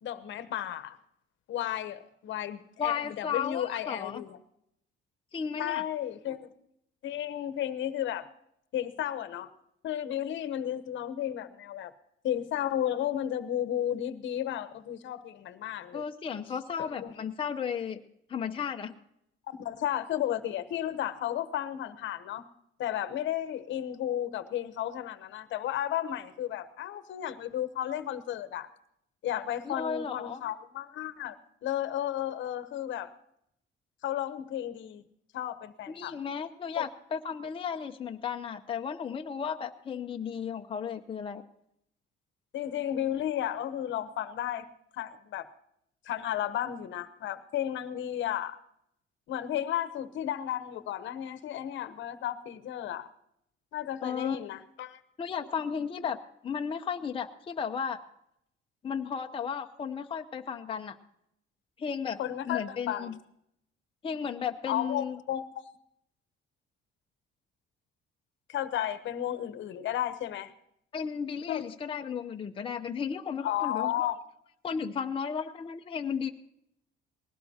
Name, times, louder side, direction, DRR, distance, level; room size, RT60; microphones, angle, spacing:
voice 1, 0.0-1.0 1.5-4.4 5.6-6.5 7.0-8.2 8.7-9.5 9.8-11.9 12.2-16.0 16.8-17.1 19.5-22.4 22.8-28.7 29.2-31.4 31.6-33.1 34.0-35.0 35.3-36.1 36.8-36.9 42.5-44.7 44.9-45.5 46.0-48.6 49.3-53.1 53.7-55.0 62.2-63.1 64.7-65.7 68.5-70.5 71.5-71.6 73.4-74.2, left 11 dB, 65° left, 13 dB, 1.0 m, -33 dB
voice 2, 2.8-4.2 5.3-5.8 15.9-18.0 18.3-18.9 29.7-30.4 35.9-41.4 54.0-54.4 55.2-56.2 56.4-58.0 58.8-61.0 61.8-62.2 62.5-63.2 64.0-65.2 70.9-74.1 74.6-76.3, left 7 dB, 25° left, 4 dB, 0.7 m, -34 dB
20.0 x 17.0 x 2.9 m, 0.75 s
cardioid pair, 145°, 21 cm